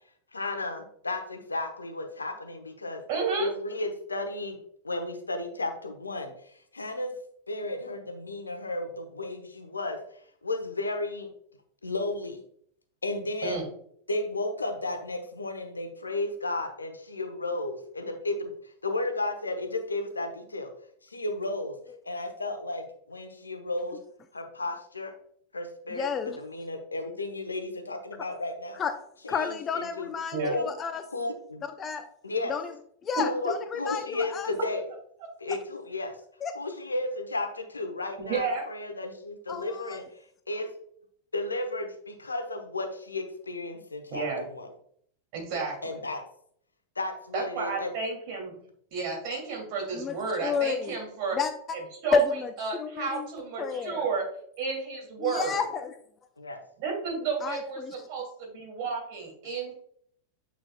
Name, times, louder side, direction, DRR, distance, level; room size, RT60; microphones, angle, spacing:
voice 1, 0.3-3.0 3.4-4.6 4.8-7.1 7.5-10.0 10.4-11.3 11.8-12.4 13.0-13.6 14.1-18.3 18.6-20.7 21.0-21.8 22.0-24.0 24.3-25.1 25.5-26.1 26.4-28.8 29.2-30.1 30.4-30.7 31.1-31.6 32.2-32.6 33.2-34.8 35.4-36.2 36.5-40.1 40.5-40.7 41.3-44.7 45.8-46.2 47.0-47.9 56.4-56.6, left 2 dB, 80° left, 6 dB, 1.0 m, -33 dB
voice 2, 3.1-3.5 13.4-13.6 30.3-30.5 38.2-38.6 44.1-44.4 45.3-46.0 47.3-48.6 48.9-51.4 52.0-52.3 52.6-54.2 54.6-55.6 56.8-57.8 58.1-59.7, right 5 dB, 45° right, 1 dB, 2.6 m, -31 dB
voice 3, 25.9-26.4 28.8-28.9 29.3-31.0 31.6-32.1 32.5-32.7 33.0-34.5 36.4-36.5 39.5-40.0 49.9-50.1 50.4-51.0 51.3-51.5 52.1-52.5 52.8-53.3 53.6-54.1 55.2-55.9 57.4-57.9, left 6 dB, 25° left, 9 dB, 0.5 m, -30 dB
8.8 x 5.7 x 2.3 m, 0.64 s
figure-of-eight pair, 90°, 0 cm